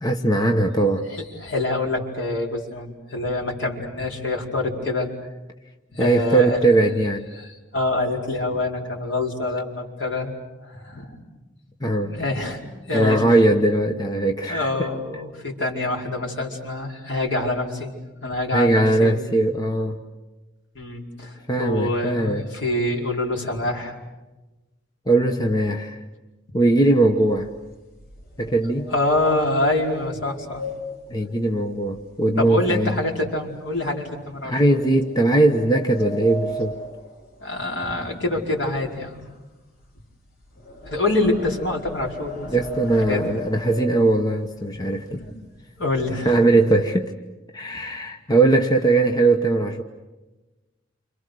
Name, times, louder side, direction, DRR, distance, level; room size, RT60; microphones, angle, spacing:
voice 1, 0.0-1.1 6.0-7.3 11.8-12.2 12.9-14.7 18.5-20.0 21.5-22.4 25.1-26.0 26.5-27.5 28.4-28.9 31.1-33.0 34.4-36.8 42.5-45.2 46.2-47.1 47.5-49.8, right 2 dB, 20° left, 4 dB, 1.1 m, -20 dB
voice 2, 1.1-5.1 5.9-6.6 7.4-10.3 10.6-11.1 12.0-13.2 14.4-17.9 18.2-19.2 20.7-23.9 28.9-30.6 32.4-34.8 37.4-39.1 40.9-42.5 43.0-43.2 45.2-45.3 45.8-46.4, left 2 dB, 70° left, -1 dB, 4.9 m, -26 dB
sound 1, 27.3-32.6 32.9-33.3 33.8-33.9 34.7-38.0 38.3-44.6 45.2-45.3 45.6-45.8 46.1-46.8, equal, 50° left, 6.8 m, -37 dB
29.5 x 27.0 x 6.6 m, 1.1 s
head